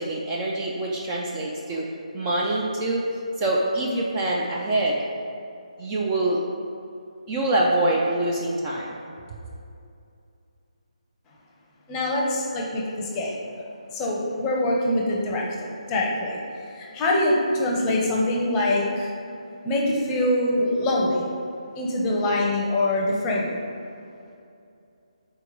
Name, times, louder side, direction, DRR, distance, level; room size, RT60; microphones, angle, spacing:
voice 1, 0.0-1.9 2.1-3.1 3.4-5.0 5.8-6.4 7.3-9.0, right 1 dB, 20° right, -3 dB, 0.4 m, -25 dB
voice 2, 11.9-13.6 13.9-16.4 16.7-19.1 19.6-21.3 21.8-23.6, left 1 dB, 15° left, -3 dB, 0.7 m, -24 dB
4.5 x 4.3 x 5.1 m, 2.6 s
figure-of-eight pair, 155°, 4 cm